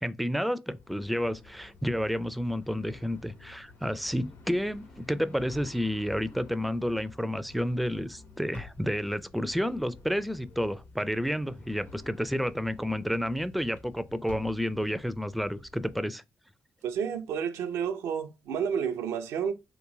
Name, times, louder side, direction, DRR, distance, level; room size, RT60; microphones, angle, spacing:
voice 1, 0.0-16.2, equal, ahead, 0.3 m, -30 dB
sound 1, 0.7-16.0, left 4 dB, 85° left, 1.2 m, -51 dB
voice 2, 16.8-19.5, right 7 dB, 80° right, 0.5 m, -30 dB
3.1 x 3.0 x 2.6 m
supercardioid pair, 55°, 5 cm